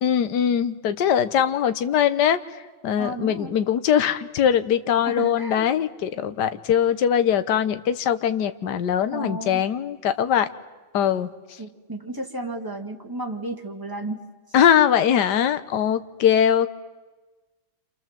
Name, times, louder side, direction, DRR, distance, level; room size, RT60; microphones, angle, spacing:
voice 1, 0.0-2.4 2.8-10.5 10.9-11.3 14.5-16.7, left 9 dB, 60° left, 11 dB, 1.5 m, -21 dB
voice 2, 3.0-3.5 5.0-5.7 9.1-9.6 11.6-14.2, right 2 dB, 10° right, 2 dB, 2.3 m, -33 dB
28.5 x 27.5 x 7.6 m, 1.2 s
omnidirectional pair, 2.3 m